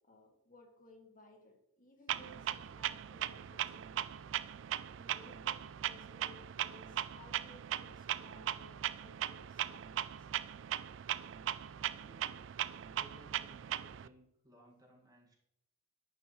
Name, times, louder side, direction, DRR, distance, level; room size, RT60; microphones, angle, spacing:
voice 1, 0.0-4.3 4.9-10.3, left 2 dB, 40° left, 1 dB, 2.1 m, -60 dB
Clock, 2.1-14.1, right 10 dB, 65° right, 0.4 m, -39 dB
voice 2, 11.7-12.5 12.9-15.4, right 1 dB, 20° right, -2 dB, 1.9 m, -61 dB
10.5 x 8.8 x 3.2 m, 0.78 s
head